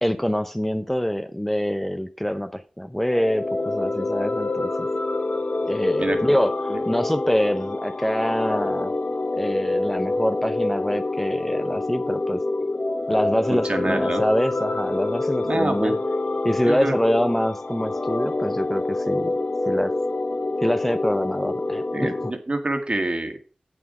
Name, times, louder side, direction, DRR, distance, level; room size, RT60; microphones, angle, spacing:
voice 1, 0.0-4.9 5.6-9.0 9.4-12.4 13.1-16.0 16.4-19.3 19.7-19.9 20.6-22.1, equal, 10° left, 9 dB, 0.7 m, -25 dB
sound 1, 3.0-22.3, left 2 dB, 55° left, 0.9 m, -26 dB
voice 2, 6.0-6.4 6.7-6.8 13.5-14.2 15.4-16.0 16.7-16.9 21.9-23.4, right 2 dB, 45° right, 6 dB, 1.9 m, -26 dB
8.4 x 7.7 x 4.9 m, 0.38 s
cardioid pair, 45°, 3 cm